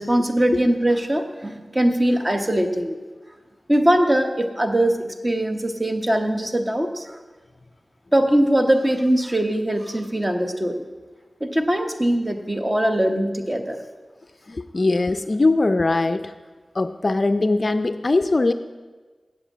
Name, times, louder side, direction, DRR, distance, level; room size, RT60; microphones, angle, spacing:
voice 1, 0.0-2.9 3.7-7.2 8.1-10.9 11.4-13.8, right 1 dB, 20° right, 5 dB, 1.0 m, -21 dB
voice 2, 14.5-16.3 16.8-18.5, left 2 dB, 45° left, 10 dB, 0.4 m, -21 dB
7.8 x 7.4 x 8.3 m, 1.3 s
wide cardioid pair, 75°, 0 cm